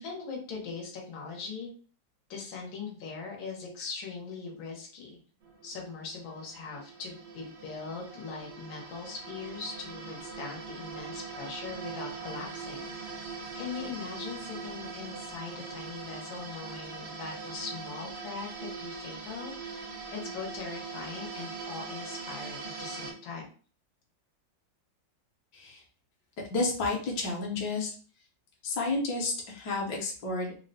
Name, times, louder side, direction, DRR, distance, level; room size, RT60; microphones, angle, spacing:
voice 1, 0.0-1.7 2.3-5.2 5.6-13.1 13.6-23.5, left 4 dB, 85° left, 0 dB, 1.7 m, -41 dB
sound 1, 5.4-23.1, right 4 dB, 80° right, 0.5 m, -42 dB
voice 2, 26.4-27.9 28.6-30.6, left 3 dB, 70° left, -1 dB, 1.4 m, -31 dB
3.8 x 2.0 x 2.6 m, 0.40 s
omnidirectional pair, 2.1 m